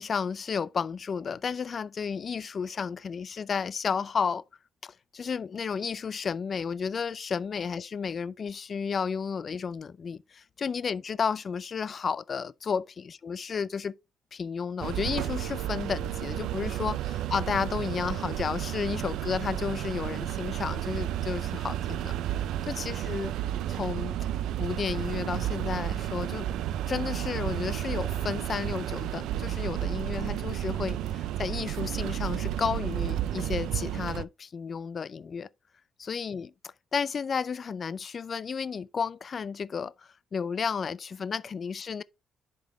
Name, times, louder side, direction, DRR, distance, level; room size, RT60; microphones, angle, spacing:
voice 1, 0.0-4.4 4.8-13.9 14.3-22.1 22.7-23.3 23.7-24.2 24.6-26.5 26.9-35.5 36.0-42.0, left 6 dB, 45° left, 0.4 m, -32 dB
sound 1, 14.8-34.3, right 12 dB, 85° right, 0.4 m, -32 dB
10.5 x 3.7 x 3.4 m
cardioid pair, 90°, 0 cm